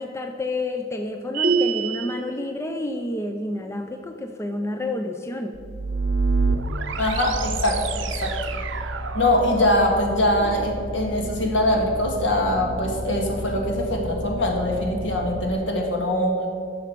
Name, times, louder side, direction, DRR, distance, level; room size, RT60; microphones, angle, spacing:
voice 1, 0.0-5.5, left 1 dB, 15° left, 4 dB, 0.4 m, -29 dB
sound 1, 1.3-2.2, right 5 dB, 50° right, 1.2 m, -23 dB
sound 2, 5.5-15.5, right 3 dB, 70° right, 0.6 m, -29 dB
voice 2, 7.0-7.8 8.2-8.4 9.1-16.3, left 1 dB, 65° left, 1 dB, 1.8 m, -22 dB
10.0 x 6.5 x 5.9 m, 2.4 s
head